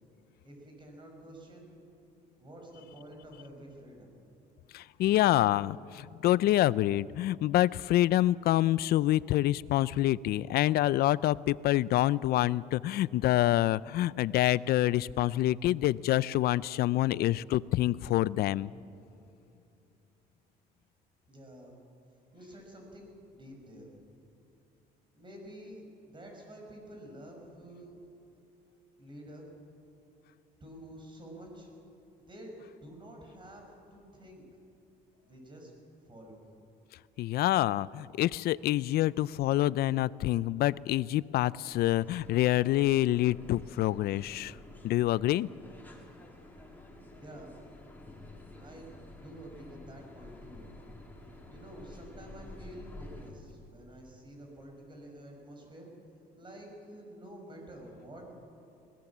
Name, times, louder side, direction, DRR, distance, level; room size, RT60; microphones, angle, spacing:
voice 1, 0.4-1.7 2.4-4.1 21.3-21.7 22.3-24.0 25.1-28.1 29.0-29.5 30.6-31.7 32.2-33.6 33.9-34.4 35.2-35.7 36.0-36.4 47.1-47.6 48.6-50.7 51.5-55.9 56.4-58.3, right 1 dB, 30° right, 1 dB, 6.2 m, -49 dB
voice 2, 4.7-18.7 37.2-44.6 44.8-45.5, left 14 dB, 65° left, 20 dB, 0.5 m, -27 dB
sound 1, 41.7-53.3, left 2 dB, 10° left, 3.5 m, -50 dB
21.0 x 18.0 x 7.4 m, 2.6 s
cardioid pair, 110°, 17 cm